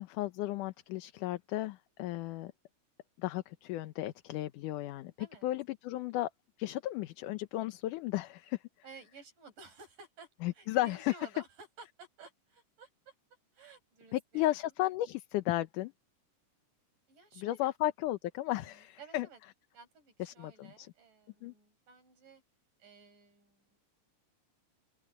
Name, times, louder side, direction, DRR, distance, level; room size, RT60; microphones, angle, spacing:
voice 1, 0.0-2.5 3.2-5.1 5.4-6.3 6.6-8.6 10.4-11.1 14.1-15.9 17.4-19.3 20.2-20.9 21.4-21.5, left 15 dB, 80° left, 2.4 m, -34 dB
voice 2, 8.8-13.1 13.5-14.7 17.1-17.7 18.5-19.4 19.7-22.4 22.8-23.8, right 4 dB, 80° right, 8.3 m, -55 dB
open air
omnidirectional pair, 3.7 m